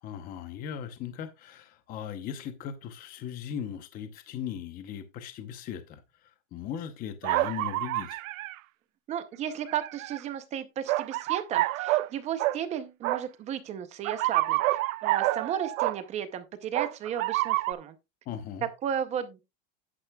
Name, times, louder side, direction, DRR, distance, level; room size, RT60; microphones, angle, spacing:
voice 1, 0.0-8.3 18.3-18.7, left 8 dB, 20° left, 0.7 m, -38 dB
sound 1, 7.2-8.5 9.7-10.2 10.9-12.1 12.4-12.6 13.0-13.2 14.0-16.0 16.7-17.7, right 18 dB, 80° right, 0.7 m, -28 dB
voice 2, 9.1-14.6 15.0-17.9 18.8-19.4, right 9 dB, 15° right, 0.6 m, -34 dB
10.5 x 9.9 x 2.2 m
supercardioid pair, 170°, 40 cm